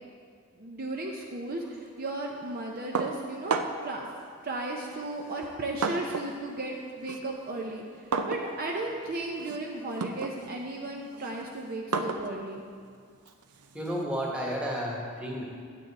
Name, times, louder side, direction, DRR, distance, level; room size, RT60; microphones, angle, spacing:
voice 1, 0.6-4.1 4.4-7.8 8.3-12.6, right 2 dB, 40° right, 0 dB, 0.6 m, -35 dB
sound 1, 3.0-4.0 4.9-6.4 6.7-14.0, right 4 dB, 85° right, 0.6 m, -34 dB
voice 2, 13.7-15.5, equal, 5° right, -4 dB, 1.4 m, -32 dB
9.0 x 8.0 x 4.2 m, 2.1 s
head